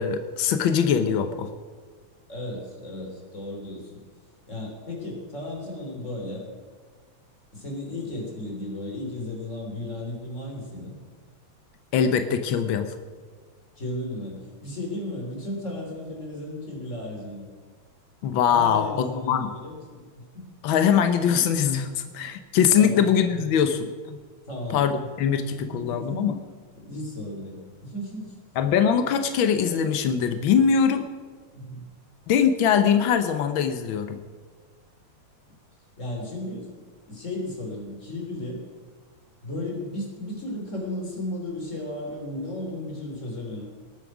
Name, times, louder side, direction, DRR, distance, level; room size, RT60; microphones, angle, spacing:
voice 1, 0.0-1.5 11.9-12.9 18.2-19.5 20.6-24.2 24.7-26.4 28.6-31.1 32.3-34.2, left 7 dB, 85° left, 8 dB, 1.1 m, -22 dB
voice 2, 2.3-4.0 4.5-6.5 7.5-10.9 13.8-17.5 18.5-20.5 22.8-23.1 24.5-24.8 25.3-26.2 26.7-28.4 31.5-31.8 36.0-36.7 37.1-38.6 39.4-43.6, left 1 dB, 25° left, 0 dB, 3.6 m, -34 dB
19.0 x 9.1 x 6.1 m, 1.5 s
omnidirectional pair, 3.4 m